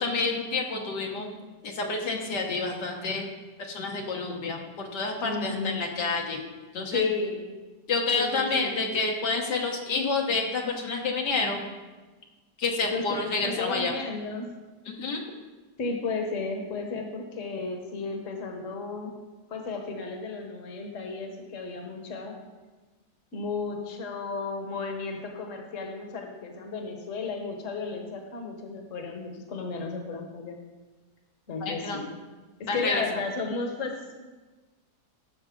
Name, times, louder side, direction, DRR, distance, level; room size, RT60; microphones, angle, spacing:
voice 1, 0.0-1.3 1.6-3.3 3.6-6.4 6.7-7.0 7.9-11.6 12.6-14.0 14.9-15.2 31.6-32.0 32.7-33.0, left 3 dB, 70° left, 1 dB, 1.6 m, -29 dB
voice 2, 5.2-5.8 6.9-7.5 8.1-8.7 12.9-14.5 15.8-19.1 19.5-22.4 23.3-30.6 31.5-32.0 32.6-34.3, left 4 dB, 45° left, 3 dB, 1.5 m, -33 dB
15.0 x 6.6 x 3.8 m, 1.2 s
omnidirectional pair, 1.9 m